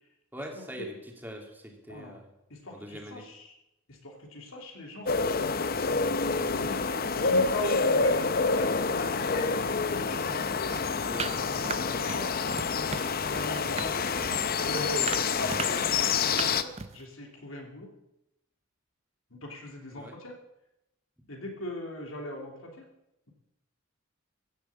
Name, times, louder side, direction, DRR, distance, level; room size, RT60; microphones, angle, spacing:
voice 1, 0.3-0.9 1.2-2.3 2.7-3.2 11.0-12.0 13.6-13.8 19.9-20.1, equal, 10° right, 1 dB, 2.7 m, -43 dB
voice 2, 1.9-2.2 2.5-3.6 3.9-5.9 6.3-10.5 11.9-14.3 14.6-17.9 19.3-20.4 21.3-22.9, left 1 dB, 85° left, 1 dB, 2.9 m, -40 dB
sound 1, 5.1-16.6, left 4 dB, 50° left, 0.7 m, -28 dB
sound 2, 10.7-12.2 12.5-13.1 13.3-17.0, right 5 dB, 30° right, 0.7 m, -37 dB
15.0 x 7.2 x 8.6 m, 0.87 s
head